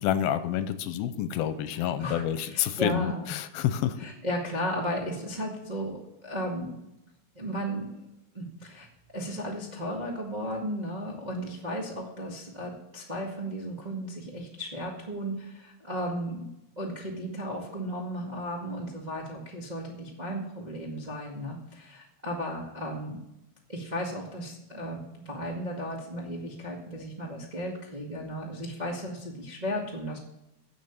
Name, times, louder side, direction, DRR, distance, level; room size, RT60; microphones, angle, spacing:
voice 1, 0.0-4.0, left 10 dB, 85° left, 12 dB, 2.5 m, -28 dB
voice 2, 1.7-3.3 4.0-6.7 7.3-8.0 8.3-8.9 9.1-16.5 16.8-23.2 23.7-30.2, equal, 80° right, -3 dB, 0.4 m, -35 dB
16.5 x 6.2 x 7.1 m, 0.91 s
omnidirectional pair, 4.3 m